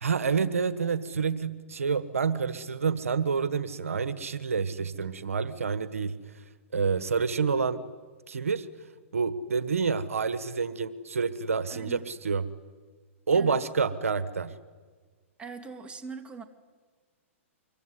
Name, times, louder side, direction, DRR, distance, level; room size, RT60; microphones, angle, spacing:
voice 1, 0.0-6.1 6.7-7.8 8.3-8.7 9.1-12.4 13.3-14.5, right 5 dB, 90° right, 14 dB, 1.4 m, -28 dB
voice 2, 11.7-12.1 13.3-13.6 15.4-16.4, right 5 dB, 15° right, 7 dB, 2.4 m, -41 dB
25.0 x 23.0 x 9.9 m, 1.5 s
hypercardioid pair, 125°, 7 cm